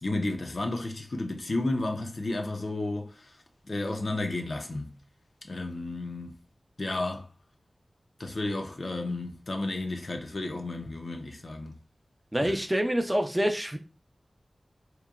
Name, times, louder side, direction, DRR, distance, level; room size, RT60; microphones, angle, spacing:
voice 1, 0.0-3.2 3.7-4.9 5.5-6.4 6.8-7.3 8.2-11.7 12.4-12.5, left 2 dB, 60° left, 0.5 m, -32 dB
voice 2, 12.3-13.8, equal, 15° right, 0.5 m, -26 dB
2.9 x 2.2 x 2.3 m
wide cardioid pair, 55°, 0 cm